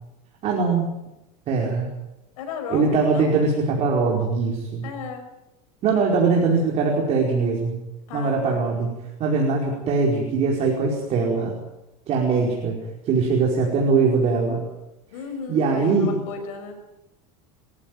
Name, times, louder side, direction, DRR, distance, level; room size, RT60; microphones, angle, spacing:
voice 1, 0.4-0.9 1.5-1.9 2.7-4.9 5.8-7.8 8.1-8.9 9.2-11.6 12.1-12.8 13.0-14.6 15.5-16.2, right 4 dB, 40° right, -1 dB, 5.1 m, -21 dB
voice 2, 2.4-3.4 4.8-5.2 8.1-8.6 15.1-16.8, left 5 dB, 80° left, 5 dB, 5.8 m, -34 dB
25.5 x 15.0 x 9.3 m, 0.94 s
supercardioid pair, 140°, 18 cm